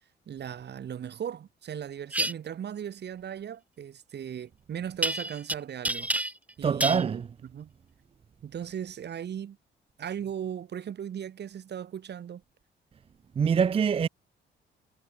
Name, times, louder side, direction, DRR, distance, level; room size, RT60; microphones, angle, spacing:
voice 1, 0.3-6.1 6.6-7.2 7.5-7.7 8.4-9.6 10.0-12.4, right 9 dB, 60° right, 2.9 m, -37 dB
sound 1, 2.1-2.3 5.0-5.5 5.8-6.5 6.8-7.0, right 1 dB, 5° right, 0.9 m, -28 dB
voice 2, 6.6-7.3 13.4-14.1, right 6 dB, 30° right, 0.4 m, -24 dB
cardioid pair, 90°, 20 cm